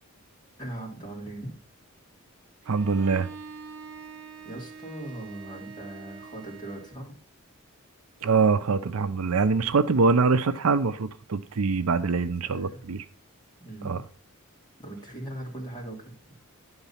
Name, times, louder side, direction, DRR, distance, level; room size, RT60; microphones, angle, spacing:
voice 1, 0.6-1.6 4.4-7.1 12.5-12.8 13.6-14.0 14.8-16.1, right 1 dB, 20° left, 3.0 m, -39 dB
Bowed string instrument, 2.6-7.0, right 5 dB, 55° right, 1.1 m, -44 dB
voice 2, 2.7-3.3 8.2-13.0 13.8-14.0, right 4 dB, 75° right, 0.6 m, -24 dB
11.0 x 4.0 x 5.7 m
head